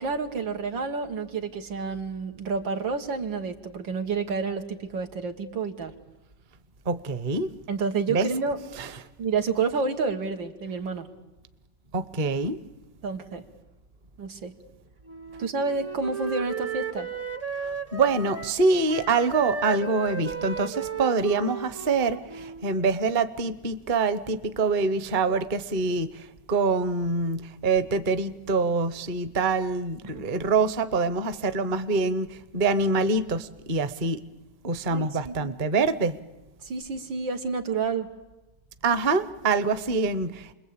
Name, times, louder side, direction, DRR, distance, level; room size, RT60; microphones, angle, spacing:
voice 1, 0.0-5.9 7.7-8.6 9.2-11.1 13.0-13.4 14.2-14.5 15.4-17.1 30.1-30.2 34.9-35.5 36.6-38.1, right 4 dB, 90° right, 5 dB, 2.5 m, -29 dB
voice 2, 6.9-7.5 8.1-8.3 8.8-8.9 11.9-12.6 17.6-34.2 34.6-36.2 38.8-40.5, right 4 dB, 35° right, 13 dB, 0.9 m, -25 dB
Wind instrument woodwind instrument, 15.1-18.6 18.9-22.7, right 5 dB, 15° right, 0.5 m, -35 dB
29.5 x 21.5 x 8.7 m, 1.1 s
omnidirectional pair, 2.0 m